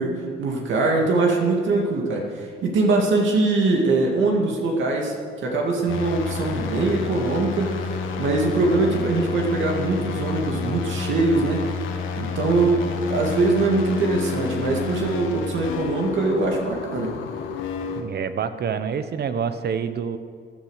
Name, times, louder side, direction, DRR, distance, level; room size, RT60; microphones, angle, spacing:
voice 1, 0.0-5.1 5.4-7.7 8.2-11.6 12.2-12.8 13.1-17.2, right 3 dB, 75° right, 0 dB, 2.3 m, -22 dB
sound 1, 5.9-18.0, left 5 dB, 85° left, 1.5 m, -29 dB
voice 2, 18.0-20.2, right 7 dB, 55° right, 11 dB, 1.0 m, -27 dB
15.0 x 10.5 x 6.5 m, 2.1 s
cardioid pair, 90°, 20 cm